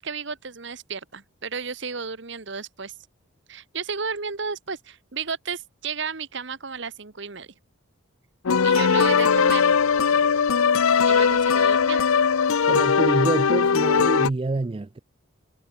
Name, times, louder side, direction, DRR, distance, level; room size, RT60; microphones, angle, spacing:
voice 1, 0.0-2.9 3.5-7.5 8.6-9.6 11.1-12.1, right 5 dB, 55° right, 1.2 m, -33 dB
sound 1, 8.4-14.3, left 6 dB, 85° left, 0.6 m, -19 dB
voice 2, 12.7-15.0, right 2 dB, 25° right, 0.3 m, -26 dB
head